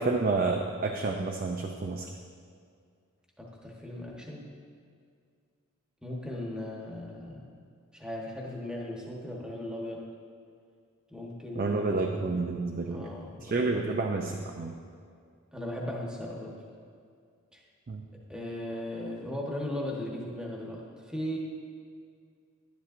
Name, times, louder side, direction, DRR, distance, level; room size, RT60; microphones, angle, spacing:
voice 1, 0.0-2.1 11.6-13.1 13.4-14.7 17.9-18.1, right 3 dB, 40° right, 2 dB, 0.4 m, -29 dB
voice 2, 3.4-4.4 6.0-7.5 7.9-10.1 11.1-12.2 12.8-14.0 15.5-16.6 17.5-17.6 18.3-21.4, left 1 dB, 5° right, -2 dB, 1.1 m, -37 dB
11.5 x 10.5 x 2.5 m, 2.2 s
head